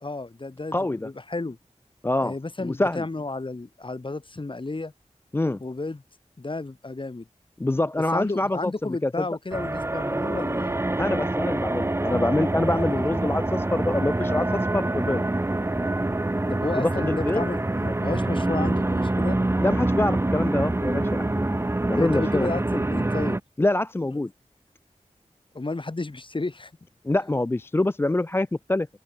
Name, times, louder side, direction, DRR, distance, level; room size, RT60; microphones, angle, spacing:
voice 1, 0.0-1.6 2.2-4.9 5.6-6.0 6.4-7.3 8.1-10.8 16.5-19.4 22.0-23.4 25.5-26.7, left 3 dB, 45° left, 1.5 m, -32 dB
voice 2, 0.7-1.1 2.0-2.3 2.6-3.1 5.3-5.6 7.6-9.3 11.0-15.2 16.8-17.4 19.6-22.5 23.6-24.3 27.0-28.9, left 2 dB, 20° left, 0.3 m, -25 dB
sound 1, 9.5-23.4, right 2 dB, 20° right, 0.6 m, -25 dB
open air
wide cardioid pair, 55°, 12 cm